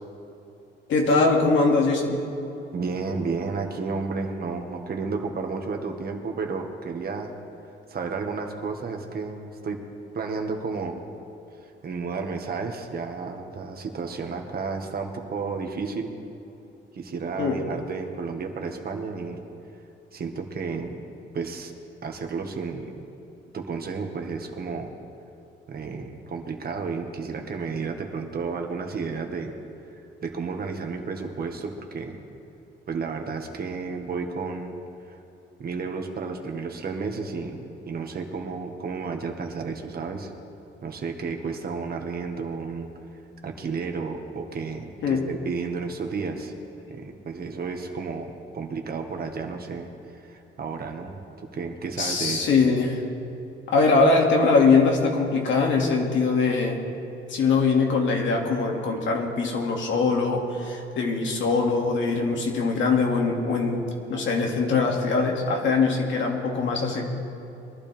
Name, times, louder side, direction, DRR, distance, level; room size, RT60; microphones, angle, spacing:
voice 1, 0.9-2.2 17.4-17.6 45.0-45.2 52.0-53.0 53.7-56.8 57.3-63.8 64.1-67.1, left 4 dB, 70° left, 0 dB, 2.4 m, -22 dB
voice 2, 2.7-7.3 7.9-9.8 10.1-11.0 11.8-16.2 16.9-19.4 20.1-21.0 21.3-21.7 22.0-22.9 23.5-24.9 25.7-29.6 30.2-32.2 32.9-34.8 35.6-40.3 40.8-42.9 43.4-46.5 46.9-49.9 50.2-52.6, right 4 dB, 50° right, 3 dB, 1.7 m, -32 dB
22.5 x 12.0 x 3.5 m, 2.9 s
cardioid pair, 90°, 20 cm